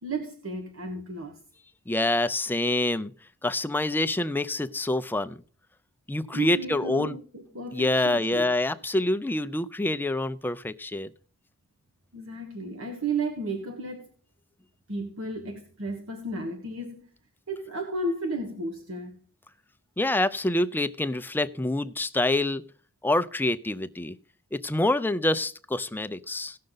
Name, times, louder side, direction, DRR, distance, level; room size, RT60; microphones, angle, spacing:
voice 1, 0.0-1.4 6.3-8.5 12.1-14.1 14.9-17.1 17.5-19.1, right 2 dB, 70° right, 1.4 m, -33 dB
voice 2, 1.9-3.1 3.4-5.4 6.1-7.2 7.7-11.1 20.0-22.6 23.0-24.2 24.5-26.6, left 1 dB, 10° left, 0.4 m, -26 dB
17.0 x 6.5 x 3.9 m
head